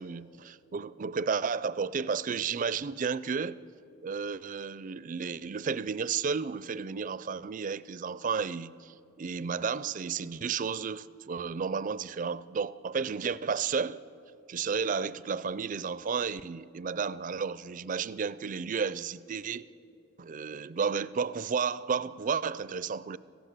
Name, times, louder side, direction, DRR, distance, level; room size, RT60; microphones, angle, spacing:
voice 1, 0.0-3.6 4.0-14.0 14.5-19.7 20.2-23.2, right 5 dB, 40° right, 0.4 m, -32 dB
26.5 x 15.5 x 6.6 m
head